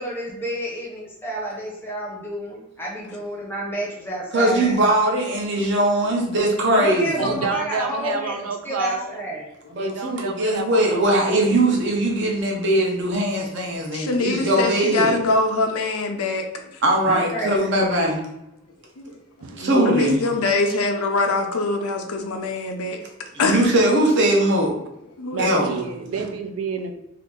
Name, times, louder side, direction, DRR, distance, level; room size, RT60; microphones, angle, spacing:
voice 1, 0.0-4.9 6.7-8.4 8.6-9.5 17.1-18.3, right 1 dB, 10° left, -3 dB, 0.7 m, -30 dB
voice 2, 4.3-7.3 9.7-15.2 16.8-18.2 19.6-20.2 23.4-24.7 25.4-25.8, right 1 dB, 50° right, -1 dB, 0.8 m, -20 dB
voice 3, 7.2-9.3 9.8-11.5 19.4-20.1 20.7-20.9 24.5-24.6 25.3-26.9, right 4 dB, 75° right, 6 dB, 0.4 m, -29 dB
voice 4, 13.9-16.4 19.0-19.6 19.9-23.0 23.4-23.7 25.2-25.6, left 3 dB, 80° left, 4 dB, 0.6 m, -23 dB
2.8 x 2.5 x 3.6 m, 0.87 s
head